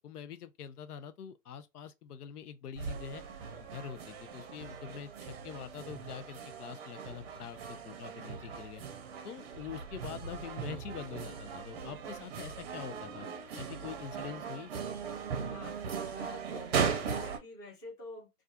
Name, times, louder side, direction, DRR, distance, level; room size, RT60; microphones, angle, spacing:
voice 1, 0.0-3.2 3.7-8.8 9.2-13.3 13.6-14.7, left 8 dB, 75° left, 0.6 m, -45 dB
sound 1, 2.8-17.4, right 6 dB, 40° right, 0.6 m, -39 dB
voice 2, 15.3-18.3, left 2 dB, 5° left, 0.5 m, -48 dB
2.4 x 2.4 x 2.3 m
hypercardioid pair, 135°, 47 cm